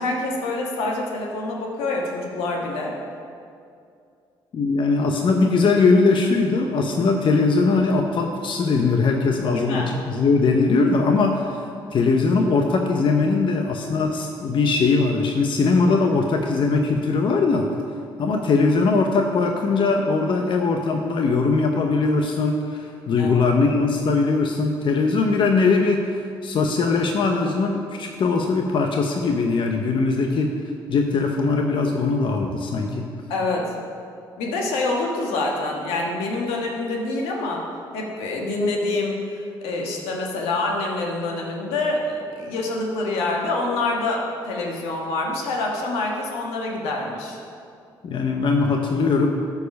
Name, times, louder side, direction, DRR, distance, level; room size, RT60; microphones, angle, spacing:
voice 1, 0.0-2.9 9.5-9.9 23.1-23.4 33.3-33.8 34.4-37.6 37.9-39.2 39.6-47.4, left 2 dB, 90° left, -1 dB, 1.4 m, -26 dB
voice 2, 4.5-11.7 11.9-17.7 18.2-30.5 30.9-33.1 48.0-49.3, left 4 dB, 55° left, 3 dB, 0.8 m, -20 dB
12.5 x 4.8 x 5.3 m, 2.4 s
supercardioid pair, 65°, 10 cm